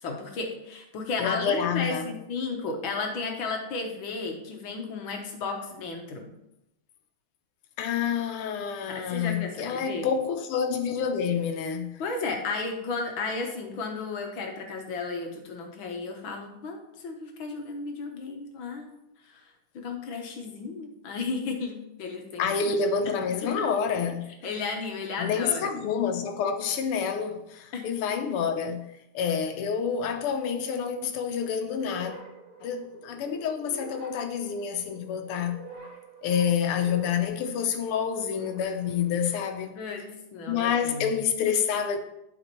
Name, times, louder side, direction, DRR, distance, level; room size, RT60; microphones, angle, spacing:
voice 1, 0.0-6.3 8.9-10.1 12.0-19.0 19.3-19.4 19.7-22.7 23.4-23.5 24.4-25.7 27.7-27.9 39.7-40.0 40.3-41.1, left 4 dB, 70° left, 1.8 m, -34 dB
voice 2, 1.2-2.1 7.8-12.0 22.4-24.5 25.2-28.9 29.1-32.2 32.6-35.6 36.2-39.7 40.5-42.0, left 7 dB, 85° left, 1.7 m, -28 dB
sound 1, 31.7-39.7, right 3 dB, 80° right, 2.7 m, -47 dB
11.0 x 5.3 x 3.0 m
omnidirectional pair, 2.4 m